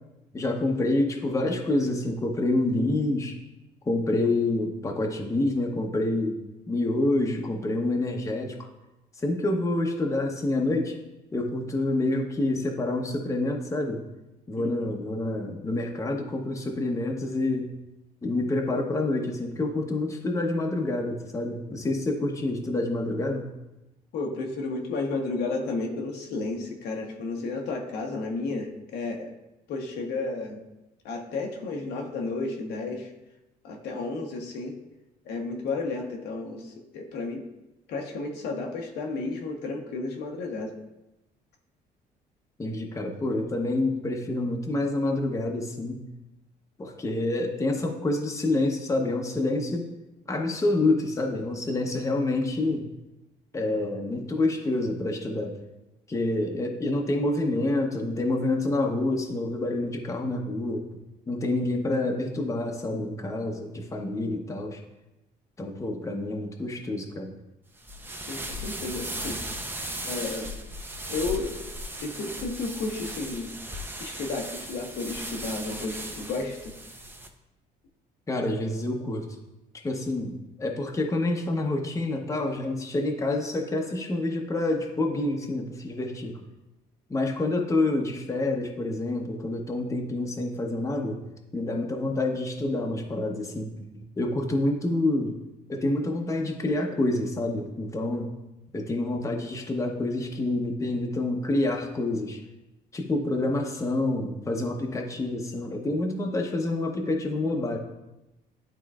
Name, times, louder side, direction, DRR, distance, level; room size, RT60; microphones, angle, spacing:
voice 1, 0.3-3.3 3.9-6.4 6.7-8.7 9.2-11.0 11.3-14.0 14.5-17.7 18.2-23.5 42.6-46.0 46.8-49.9 50.3-52.8 53.5-55.6 56.1-60.9 61.3-64.8 65.6-67.3 78.3-79.3 79.8-86.4 87.1-91.2 91.5-95.4 95.7-98.3 98.7-102.4 102.9-107.8, left 2 dB, 20° left, 2 dB, 0.8 m, -27 dB
voice 2, 14.6-14.9 24.1-29.3 29.7-30.6 31.0-33.1 33.6-34.7 35.2-37.4 37.9-40.8 68.3-69.4 70.1-70.5 71.1-71.7 72.0-73.5 74.0-76.7, left 3 dB, 80° left, 2 dB, 1.0 m, -32 dB
sound 1, 67.8-77.3, right 1 dB, 10° right, 0.6 m, -37 dB
11.0 x 3.8 x 2.4 m, 0.96 s
cardioid pair, 110°, 17 cm